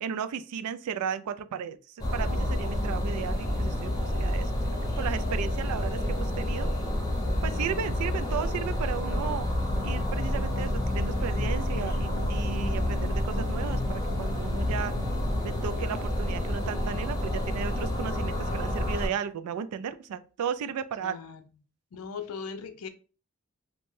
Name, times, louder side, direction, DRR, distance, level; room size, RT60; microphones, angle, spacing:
voice 1, 0.0-6.7 7.4-9.5 9.8-15.0 15.4-21.2, right 7 dB, 85° right, 0.3 m, -35 dB
sound 1, 2.0-19.1, left 1 dB, 15° left, 0.6 m, -29 dB
sound 2, 9.4-15.4, left 2 dB, 25° right, 0.7 m, -36 dB
voice 2, 21.0-21.4 21.9-22.9, left 5 dB, 75° left, 0.4 m, -38 dB
2.6 x 2.1 x 3.1 m
head